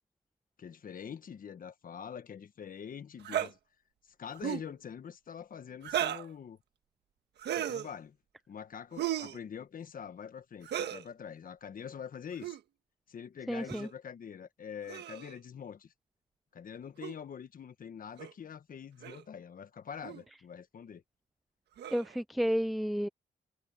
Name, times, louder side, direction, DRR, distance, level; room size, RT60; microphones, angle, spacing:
voice 1, 0.6-3.6 4.0-6.6 7.5-8.2 8.5-12.6 13.1-15.9 16.5-21.0, left 7 dB, 55° left, 1.4 m, -45 dB
sound 1, 3.2-3.5 4.3-4.7 5.8-6.3 7.4-7.9 9.0-9.4 10.6-11.0 12.3-12.6 13.7-13.9 14.9-15.3 17.0-17.1 18.2-18.3 19.0-19.2 20.0-20.2 21.8-22.2, right 11 dB, 90° right, 1.5 m, -35 dB
voice 2, 13.5-13.9 21.9-23.1, equal, ahead, 0.3 m, -31 dB
cardioid pair, 90°, 17 cm